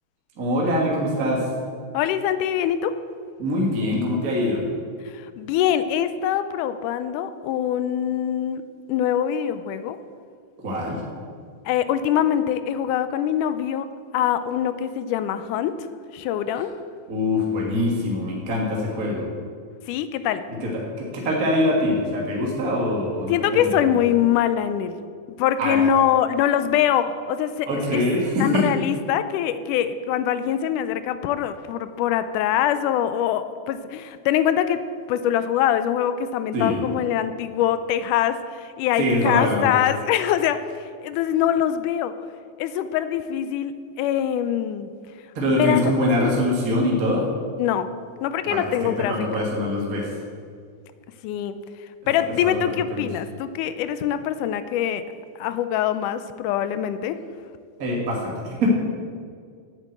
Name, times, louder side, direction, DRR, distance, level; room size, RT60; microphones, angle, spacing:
voice 1, 0.4-1.5 3.4-4.6 10.6-11.0 17.1-19.3 20.6-23.8 25.6-25.9 27.7-28.7 36.5-36.8 39.0-39.7 45.3-47.3 48.4-50.1 52.4-52.5 52.9-53.0 57.8-58.7, left 1 dB, 35° right, -2 dB, 1.4 m, -23 dB
voice 2, 1.9-3.0 5.1-8.6 8.9-10.0 11.7-13.9 14.1-15.8 16.1-16.7 19.9-20.5 23.3-25.0 25.4-28.0 28.4-34.8 35.1-40.6 41.0-42.2 42.6-44.9 45.5-45.8 46.2-46.3 47.6-47.9 48.2-49.5 51.2-51.6 52.1-55.0 55.4-57.2, left 10 dB, 85° left, 12 dB, 2.1 m, -23 dB
8.8 x 8.2 x 7.8 m, 2.1 s
omnidirectional pair, 3.7 m